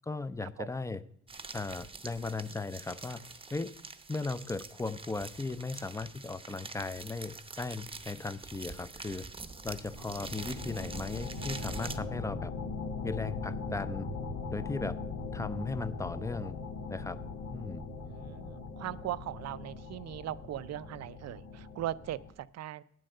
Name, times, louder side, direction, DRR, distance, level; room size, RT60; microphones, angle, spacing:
voice 1, 0.1-1.0 1.5-3.2 3.5-3.7 4.1-9.3 9.6-12.5 13.0-14.1 14.5-15.0 15.3-16.6 16.9-17.2 17.5-17.8, left 3 dB, 10° left, 15 dB, 0.5 m, -37 dB
sound 1, 1.3-12.0, right 4 dB, 20° right, 0.7 m, -45 dB
sound 2, 9.5-22.3, left 4 dB, 85° left, 1.5 m, -40 dB
voice 2, 18.0-22.8, right 13 dB, 60° right, 17 dB, 0.5 m, -39 dB
9.1 x 7.7 x 6.5 m, 0.65 s
cardioid pair, 90°, 30 cm